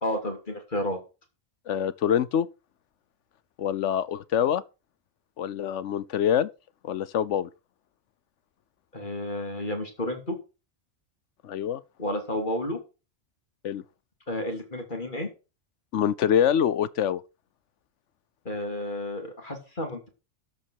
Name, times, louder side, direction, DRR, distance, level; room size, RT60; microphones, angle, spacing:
voice 1, 0.0-1.0 8.9-10.4 12.0-12.8 14.3-15.3 18.4-20.1, left 1 dB, 40° left, 3.1 m, -31 dB
voice 2, 1.7-2.5 3.6-4.6 5.4-6.5 6.8-7.5 11.4-11.8 13.6-13.8 15.9-17.2, left 9 dB, 80° left, 1.1 m, -25 dB
13.0 x 5.3 x 6.4 m
omnidirectional pair, 1.2 m